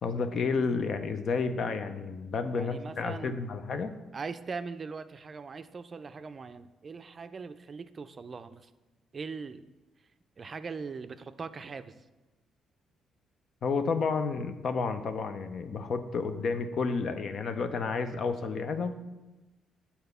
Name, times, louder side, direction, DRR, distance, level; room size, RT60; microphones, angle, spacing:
voice 1, 0.0-3.9 13.6-18.9, left 4 dB, 55° left, 9 dB, 0.6 m, -31 dB
voice 2, 2.5-3.4 4.1-8.7 9.1-9.7 10.4-12.0, right 4 dB, 40° right, 10 dB, 0.4 m, -40 dB
7.9 x 4.2 x 6.8 m, 1.1 s
cardioid pair, 90°, 0 cm